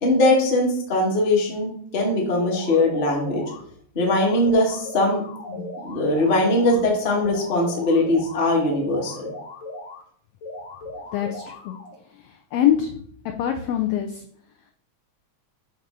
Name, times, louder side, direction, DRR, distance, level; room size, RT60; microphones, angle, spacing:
voice 1, 0.0-3.4 3.9-5.2 5.5-9.3, left 1 dB, 50° left, -1 dB, 0.6 m, -21 dB
sound 1, 2.4-3.6 4.0-6.8 7.2-10.0 10.4-12.0, left 2 dB, 65° left, 2.1 m, -38 dB
voice 2, 11.1-11.7 12.2-12.9 13.4-14.2, left 10 dB, 90° left, 4 dB, 1.3 m, -24 dB
7.8 x 2.7 x 5.5 m, 0.63 s
omnidirectional pair, 3.4 m